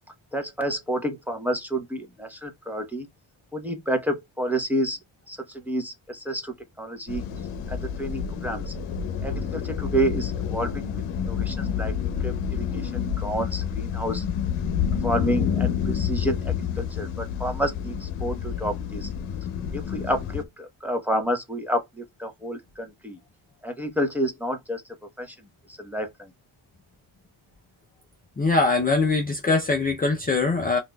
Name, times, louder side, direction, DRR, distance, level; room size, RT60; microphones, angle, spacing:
voice 1, 0.3-3.1 3.5-5.0 5.3-7.2 7.7-8.7 9.2-10.9 11.2-11.9 12.2-14.2 15.0-19.1 19.7-23.2 23.6-24.8 25.2-25.3 25.7-26.3, right 1 dB, 5° right, 0.9 m, -29 dB
sound 1, 7.1-20.4, left 8 dB, 85° left, 0.8 m, -29 dB
voice 2, 28.4-30.8, left 3 dB, 20° left, 0.5 m, -22 dB
5.6 x 2.6 x 2.2 m
cardioid pair, 85°, 49 cm